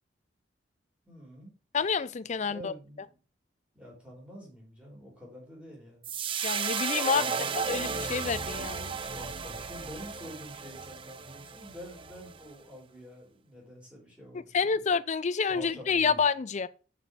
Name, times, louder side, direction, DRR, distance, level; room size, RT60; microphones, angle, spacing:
voice 1, 1.1-1.5 2.4-3.2 3.7-6.1 7.1-7.8 9.1-14.9 15.5-16.2, equal, 5° right, 4.1 m, -47 dB
voice 2, 1.7-2.7 6.4-7.3 7.7-8.9 14.5-16.7, left 5 dB, 40° left, 0.4 m, -28 dB
sound 1, 6.0-12.4, right 5 dB, 30° right, 0.5 m, -34 dB
6.7 x 6.1 x 4.8 m
head